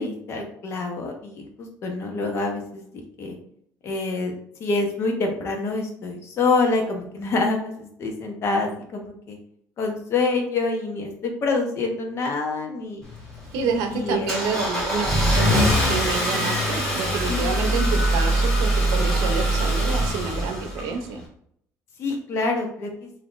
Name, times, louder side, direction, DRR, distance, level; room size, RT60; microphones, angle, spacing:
voice 1, 0.0-3.4 3.8-4.3 4.6-9.4 9.8-13.0 13.9-14.3 17.3-17.6 18.7-19.4 22.0-23.1, left 3 dB, 45° left, 3 dB, 0.8 m, -26 dB
Car / Engine starting, 13.0-21.2, equal, 10° left, 1.4 m, -23 dB
voice 2, 13.5-21.2, right 5 dB, 90° right, 5 dB, 0.6 m, -28 dB
3.6 x 2.7 x 2.5 m, 0.69 s
cardioid pair, 140°, 6 cm